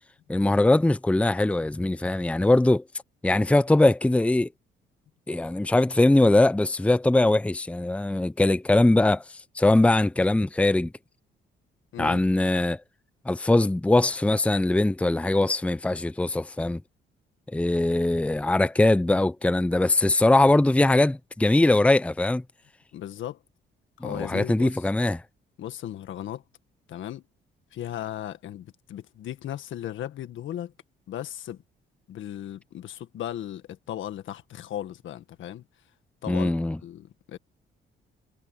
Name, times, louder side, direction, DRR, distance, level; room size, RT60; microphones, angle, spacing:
voice 1, 0.3-2.8 3.2-4.5 5.3-9.2 9.5-10.9 12.0-12.8 13.3-16.8 17.5-22.4 24.0-25.2 36.3-36.8, left 2 dB, 5° left, 0.7 m, -21 dB
voice 2, 22.9-23.4 24.0-24.9 25.6-26.4 26.9-27.2 27.7-30.7 31.1-31.6 32.1-35.6 36.2-36.5 36.8-37.4, left 11 dB, 75° left, 1.7 m, -36 dB
cardioid pair, 90°, 20 cm